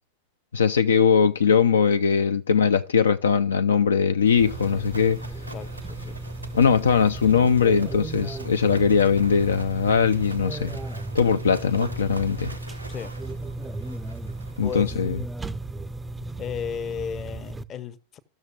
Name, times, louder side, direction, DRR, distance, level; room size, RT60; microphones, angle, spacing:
voice 1, 0.5-5.2 6.5-10.7 11.1-12.5 14.6-15.2, left 6 dB, 70° left, 0.4 m, -20 dB
Livestock farm animals working animals, 4.1-14.9, right 1 dB, 90° right, 0.8 m, -42 dB
sound 1, 4.4-17.6, right 2 dB, 10° right, 0.4 m, -35 dB
voice 2, 5.5-6.2 12.9-13.1 14.6-15.0 16.4-18.2, left 7 dB, 30° left, 0.7 m, -34 dB
15.0 x 6.4 x 2.3 m
figure-of-eight pair, 90°, 0 cm